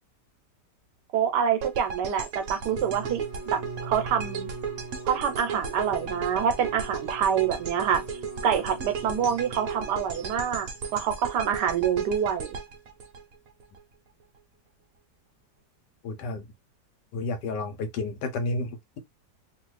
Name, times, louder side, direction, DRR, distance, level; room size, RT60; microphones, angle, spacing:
voice 1, 1.1-3.2 3.5-4.5 5.0-8.0 8.4-12.5, right 8 dB, 80° right, 1.2 m, -26 dB
sound 1, 1.6-13.8, right 5 dB, 60° right, 1.0 m, -36 dB
Bowed string instrument, 2.5-10.8, right 3 dB, 35° left, 0.9 m, -41 dB
voice 2, 16.0-16.5 17.1-19.0, left 2 dB, 80° left, 1.4 m, -31 dB
3.0 x 2.5 x 3.0 m
omnidirectional pair, 1.9 m